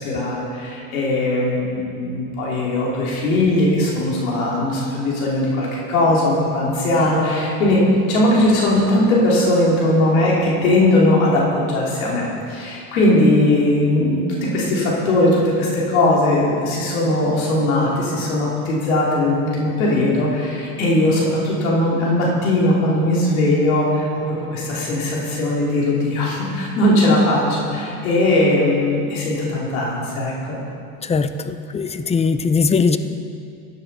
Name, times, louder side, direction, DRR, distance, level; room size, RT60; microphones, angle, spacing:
voice 1, 0.0-7.8 8.1-12.2 12.5-30.5, left 1 dB, 90° left, -4 dB, 3.1 m, -19 dB
voice 2, 31.0-33.0, left 5 dB, 15° left, 10 dB, 0.4 m, -20 dB
14.0 x 9.1 x 4.1 m, 2.6 s
supercardioid pair, 95°, 41 cm